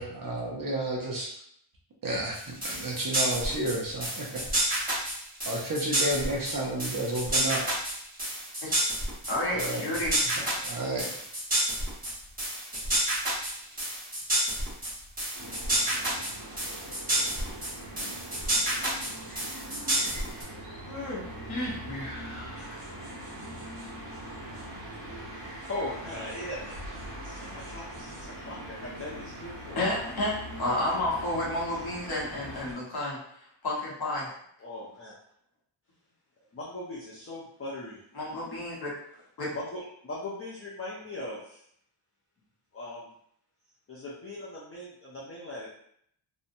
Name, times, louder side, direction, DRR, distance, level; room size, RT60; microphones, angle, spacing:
voice 1, 0.0-1.3 2.0-4.7 5.5-7.7 9.5-9.9 10.4-11.1, right 1 dB, 45° right, -2 dB, 0.6 m, -32 dB
sound 1, 2.3-20.4, right 1 dB, 15° right, 0.9 m, -29 dB
voice 2, 9.3-10.3 20.9-21.2 21.5-22.9 29.8-30.3 30.6-33.2 33.6-34.3 38.1-38.9 39.4-39.5, left 1 dB, 50° left, -5 dB, 0.9 m, -31 dB
sound 2, 15.3-32.7, right 1 dB, 65° right, 1.0 m, -42 dB
voice 3, 17.1-17.5 18.0-18.2 25.7-26.8 27.2-29.8 34.6-35.1 36.5-38.0 39.5-41.6 42.7-43.1 43.9-45.7, left 1 dB, 30° left, -7 dB, 0.4 m, -39 dB
2.7 x 2.1 x 2.6 m, 0.69 s
wide cardioid pair, 150°, 50 cm